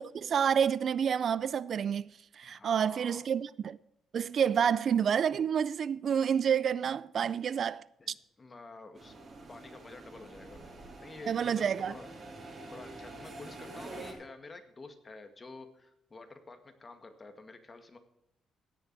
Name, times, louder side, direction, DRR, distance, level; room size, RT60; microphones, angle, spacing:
voice 1, 0.0-2.1 2.3-3.8 4.1-7.8 11.3-11.9, right 7 dB, 55° right, 0.4 m, -29 dB
voice 2, 2.4-3.3 8.0-9.2 9.5-10.6 11.0-12.1 12.7-18.0, left 3 dB, 30° left, 1.9 m, -49 dB
sound 1, 8.9-14.1, right 2 dB, 40° right, 3.2 m, -47 dB
16.5 x 7.0 x 4.7 m
cardioid pair, 100°, 0 cm